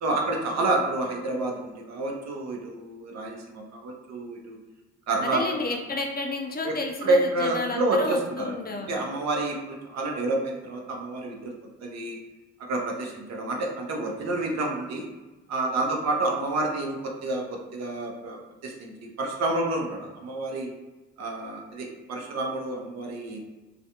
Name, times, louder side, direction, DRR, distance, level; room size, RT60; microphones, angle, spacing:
voice 1, 0.0-4.6 5.1-5.4 6.6-11.5 11.8-12.2 12.6-15.0 15.5-20.7 21.2-23.4, right 2 dB, 60° right, 1 dB, 0.6 m, -29 dB
voice 2, 5.2-8.9, left 3 dB, 30° left, 2 dB, 0.4 m, -31 dB
2.4 x 2.1 x 2.8 m, 1.2 s
cardioid pair, 90°, 30 cm